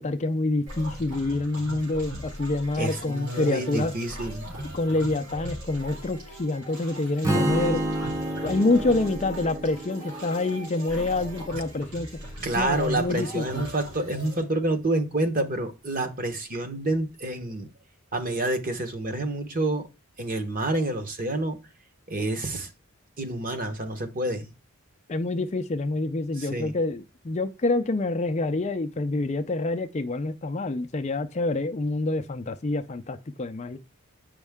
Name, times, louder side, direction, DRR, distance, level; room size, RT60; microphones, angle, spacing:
voice 1, 0.0-3.9 4.7-7.8 8.4-12.1 12.5-13.6 25.1-33.8, left 2 dB, 30° left, 0.4 m, -27 dB
sound 1, 0.7-14.4, equal, 85° right, 3.4 m, -40 dB
voice 2, 2.8-4.4 12.4-17.7 18.1-19.9 20.2-21.6 22.1-22.7 23.2-24.5 26.4-26.7, right 2 dB, 40° right, 1.1 m, -28 dB
Strum, 7.2-11.4, right 1 dB, 15° right, 0.7 m, -29 dB
8.0 x 5.3 x 3.5 m
head